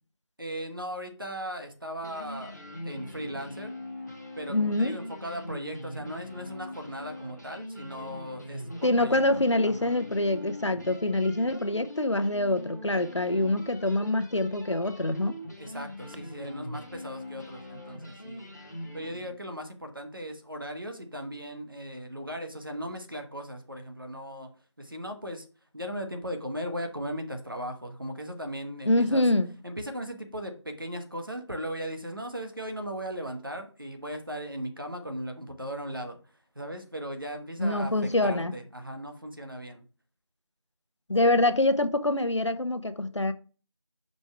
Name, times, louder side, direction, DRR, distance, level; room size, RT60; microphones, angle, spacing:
voice 1, 0.4-2.5 2.8-3.8 4.4-9.9 15.6-18.5 18.9-24.5 24.8-25.5 25.7-29.3 29.6-39.8 41.2-41.4, equal, 45° right, 1.2 m, -37 dB
sound 1, 1.6-1.7 2.0-19.3, left 1 dB, 40° left, 1.1 m, -42 dB
voice 2, 4.5-5.0 8.8-15.4 28.9-29.5 37.6-38.5 41.1-43.3, left 2 dB, 70° left, 0.8 m, -25 dB
6.1 x 5.4 x 3.3 m
figure-of-eight pair, 175°, 15 cm